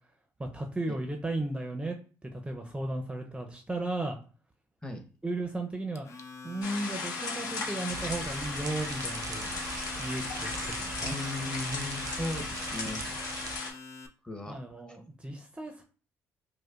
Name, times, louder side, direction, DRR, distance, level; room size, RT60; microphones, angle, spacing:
voice 1, 0.4-2.0 2.2-4.2 5.2-6.1 6.4-9.5 10.0-11.2 14.5-15.8, right 2 dB, 15° right, 3 dB, 0.6 m, -35 dB
Domestic sounds home sounds, 5.9-14.1, left 4 dB, 45° left, 0.6 m, -45 dB
sound 1, 6.6-13.7, left 4 dB, 65° left, 1.0 m, -37 dB
sound 2, 7.9-13.6, right 6 dB, 60° right, 0.5 m, -41 dB
voice 2, 11.0-13.0 14.2-14.6, left 2 dB, 15° left, 5 dB, 0.9 m, -37 dB
4.8 x 2.1 x 2.4 m, 0.38 s
supercardioid pair, 60°, 7 cm